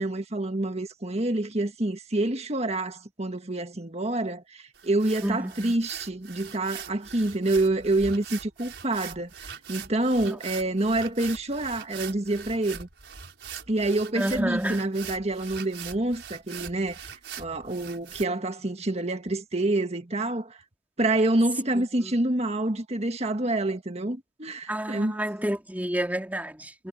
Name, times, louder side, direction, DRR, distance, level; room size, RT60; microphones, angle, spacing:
voice 1, 0.0-12.9 13.7-17.0 17.4-20.6 21.0-25.2, right 2 dB, 40° right, 1.7 m, -27 dB
sound 1, 4.7-18.2, right 7 dB, 80° right, 5.1 m, -42 dB
voice 2, 5.2-5.7 10.2-10.4 14.2-14.9 21.7-22.1 24.7-26.9, right 1 dB, 10° right, 2.4 m, -30 dB
head